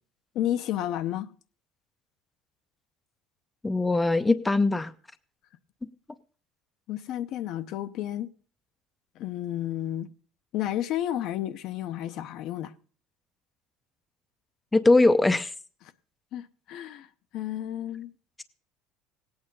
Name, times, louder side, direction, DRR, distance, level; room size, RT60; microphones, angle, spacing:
voice 1, 0.3-1.3 6.9-8.3 9.2-10.1 10.5-12.7 16.3-17.1 17.3-18.1, left 12 dB, 55° left, 0.7 m, -31 dB
voice 2, 3.6-4.9 14.7-15.5, left 2 dB, 10° left, 0.5 m, -21 dB
17.5 x 8.9 x 5.4 m
cardioid pair, 140°, 0 cm